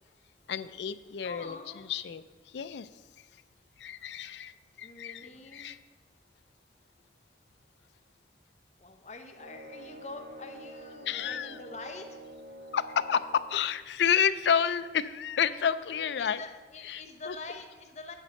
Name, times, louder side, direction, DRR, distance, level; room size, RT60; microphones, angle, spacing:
voice 1, 0.5-2.2 2.5-2.9 3.8-5.8 11.1-11.6 12.7-16.4 16.8-17.0 17.3-17.4, left 8 dB, 80° left, 14 dB, 0.4 m, -30 dB
voice 2, 1.2-1.9 4.8-5.8 8.8-12.2 16.2-18.1, left 3 dB, 40° left, 4 dB, 0.8 m, -45 dB
sound 1, 9.4-13.6, right 1 dB, 75° right, 1.1 m, -47 dB
9.2 x 4.2 x 6.3 m, 1.3 s
head